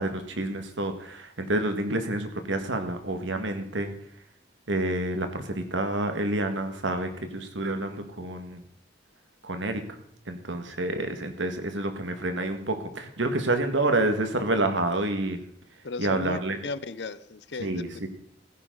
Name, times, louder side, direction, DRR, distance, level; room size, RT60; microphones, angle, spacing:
voice 1, 0.0-3.9 4.7-8.6 9.4-9.8 10.3-15.4 16.0-16.6 17.6-18.1, right 2 dB, 85° right, 7 dB, 1.9 m, -28 dB
voice 2, 15.8-18.1, left 3 dB, 65° left, 15 dB, 0.7 m, -36 dB
16.0 x 10.0 x 4.0 m, 0.71 s
head